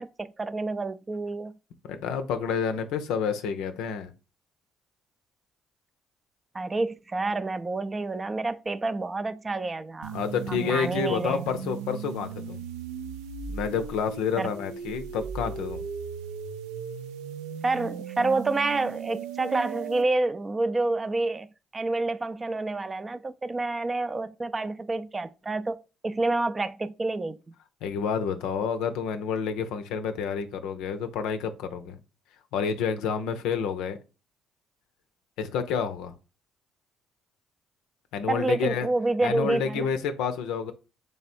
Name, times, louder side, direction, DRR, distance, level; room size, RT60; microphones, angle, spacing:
voice 1, 0.0-1.5 6.5-10.2 10.5-11.4 14.4-14.5 17.6-21.5 21.7-25.8 26.0-27.6 38.3-39.9, right 2 dB, 30° right, 0.4 m, -28 dB
voice 2, 1.8-4.1 10.1-12.6 13.5-15.8 27.8-32.0 32.5-34.0 35.4-36.1 38.1-38.9 39.2-40.7, left 6 dB, 80° left, 0.5 m, -29 dB
sound 1, 10.0-20.0, right 6 dB, 85° right, 0.4 m, -37 dB
3.5 x 3.4 x 4.2 m
hypercardioid pair, 55°, 0 cm